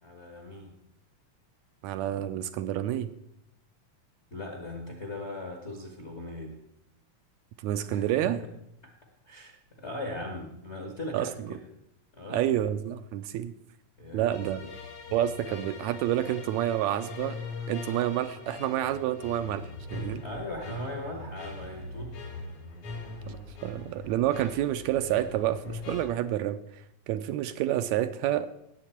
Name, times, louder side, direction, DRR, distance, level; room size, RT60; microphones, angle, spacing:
voice 1, 0.0-0.8 4.3-6.6 7.9-8.5 9.2-11.6 12.1-12.6 14.0-14.7 20.2-22.2, left 1 dB, 40° left, 1 dB, 0.9 m, -39 dB
voice 2, 1.8-3.1 7.6-8.4 11.1-11.3 12.3-13.5 14.1-14.6 15.1-17.4 17.7-20.2 23.3-28.5, right 12 dB, 80° right, 10 dB, 1.8 m, -29 dB
sound 1, 14.3-26.0, left 3 dB, 75° left, 3.5 m, -41 dB
18.0 x 7.4 x 4.4 m, 0.78 s
omnidirectional pair, 3.4 m